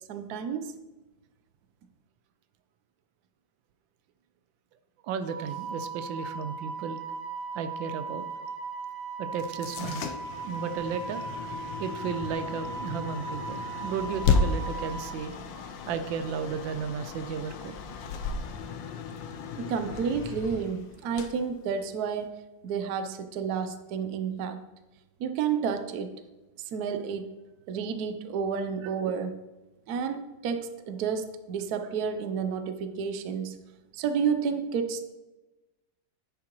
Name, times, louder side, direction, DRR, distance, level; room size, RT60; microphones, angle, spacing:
voice 1, 0.1-0.7 19.6-22.4 22.6-24.6 25.2-26.2 26.6-27.4 27.7-29.4 29.9-33.6 33.9-35.1, right 6 dB, 65° right, 9 dB, 1.1 m, -30 dB
voice 2, 5.0-7.0 7.5-8.2 9.2-10.1 10.5-11.2 11.8-15.4 15.9-17.8, right 6 dB, 85° right, 10 dB, 1.3 m, -34 dB
Wind instrument woodwind instrument, 5.2-15.1, right 4 dB, 35° left, 3.3 m, -38 dB
sound 1, 9.3-22.3, left 5 dB, 80° left, 1.3 m, -34 dB
9.8 x 7.5 x 3.0 m, 1.1 s
omnidirectional pair, 2.0 m